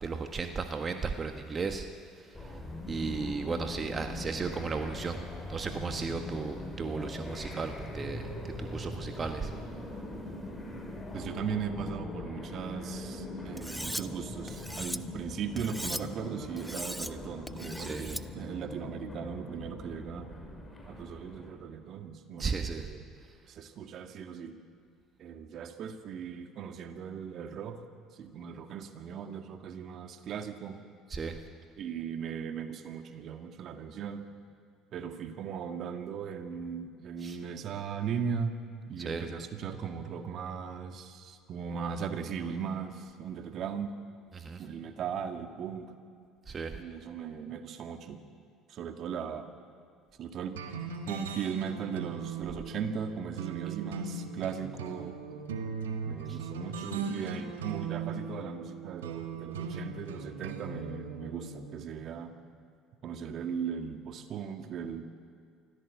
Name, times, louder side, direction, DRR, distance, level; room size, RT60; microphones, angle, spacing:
voice 1, 0.0-1.9 2.4-5.2 5.5-9.5 17.8-18.0 22.4-22.9 31.1-31.4 37.2-37.4 39.0-39.2 44.3-44.6 46.5-46.7 56.3-56.4, right 4 dB, 35° right, 6 dB, 1.5 m, -35 dB
sound 1, 2.3-21.5, left 1 dB, 20° left, 5.7 m, -41 dB
voice 2, 11.1-20.3 20.9-23.1 23.5-24.6 25.2-27.8 28.1-30.8 31.8-34.3 34.9-38.6 38.9-44.0 44.6-45.9 46.7-48.2 48.7-49.5 50.2-50.6 51.1-55.2 56.1-62.3 63.0-65.0, right 7 dB, 55° right, 7 dB, 1.8 m, -38 dB
Cutlery silverware, 13.6-14.0 14.5-15.0 15.6-16.0 16.6-17.1 17.5-18.2, equal, ahead, 0.9 m, -38 dB
sound 2, 50.6-61.8, right 5 dB, 90° right, 1.6 m, -39 dB
24.0 x 16.0 x 8.3 m, 2.2 s
hypercardioid pair, 65°, 0 cm